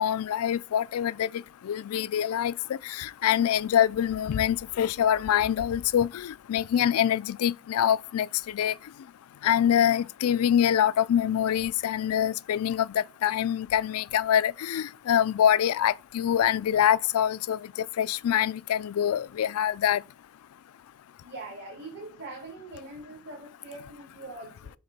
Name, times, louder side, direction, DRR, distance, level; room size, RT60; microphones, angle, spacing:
voice 1, 0.0-8.8 9.4-20.0, left 10 dB, 85° left, 0.3 m, -25 dB
voice 2, 21.2-24.7, right 2 dB, 55° right, 2.5 m, -43 dB
7.0 x 3.6 x 5.2 m
head